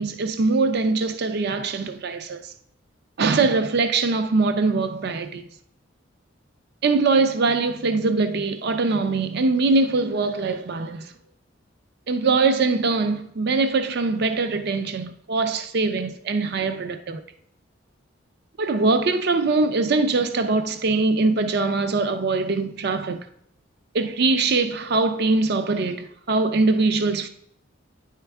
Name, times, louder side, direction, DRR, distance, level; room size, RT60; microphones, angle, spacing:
voice 1, 0.0-2.4 3.2-5.4 6.8-11.0 12.1-17.2 18.6-23.2 23.9-27.3, right 3 dB, 50° right, 0.4 m, -22 dB
9.7 x 4.5 x 3.4 m
head